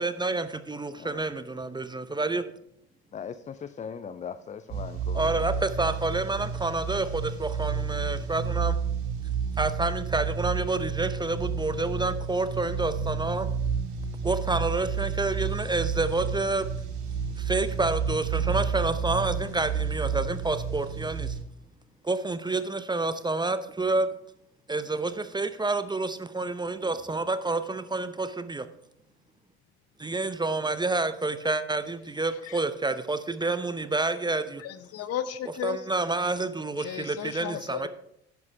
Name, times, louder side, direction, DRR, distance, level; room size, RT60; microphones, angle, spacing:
voice 1, 0.0-2.5 5.1-8.8 9.6-13.5 14.2-16.7 17.4-21.4 22.0-24.1 24.7-28.7 30.0-34.6 35.6-37.9, right 3 dB, 15° right, 0.7 m, -28 dB
voice 2, 1.0-1.3 3.1-5.7, left 7 dB, 25° left, 0.5 m, -40 dB
sound 1, 4.7-21.4, right 6 dB, 60° right, 2.2 m, -31 dB
voice 3, 34.6-35.9 36.8-37.9, left 9 dB, 50° left, 0.9 m, -34 dB
10.5 x 10.5 x 3.4 m
figure-of-eight pair, 60°, 33 cm